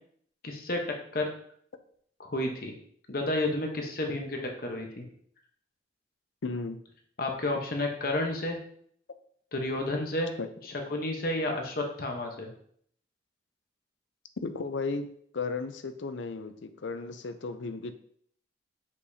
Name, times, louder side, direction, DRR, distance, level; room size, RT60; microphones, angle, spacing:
voice 1, 0.4-0.8 1.1-1.3 2.2-2.7 3.1-5.0 7.2-8.6 9.5-10.3 10.6-12.5, left 1 dB, 50° left, 2 dB, 1.0 m, -31 dB
voice 2, 6.4-6.8 10.4-10.5 14.4-17.9, left 4 dB, 85° left, 9 dB, 0.6 m, -35 dB
6.5 x 5.3 x 2.7 m, 0.63 s
head